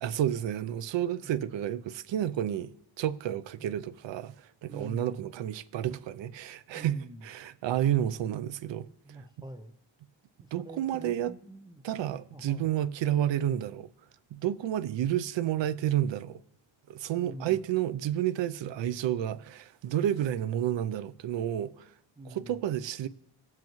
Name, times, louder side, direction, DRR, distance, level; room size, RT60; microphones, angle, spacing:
voice 1, 0.0-2.7 3.0-4.3 4.6-8.9 10.5-11.3 11.8-13.9 14.3-16.4 16.9-21.9 22.3-23.1, right 11 dB, 70° right, 0.5 m, -30 dB
voice 2, 4.7-5.2 6.7-7.3 9.0-9.7 10.6-11.8 12.3-12.7 17.2-17.6 22.2-22.6, right 1 dB, 10° right, 0.4 m, -45 dB
18.0 x 7.6 x 3.0 m
wide cardioid pair, 160°, 47 cm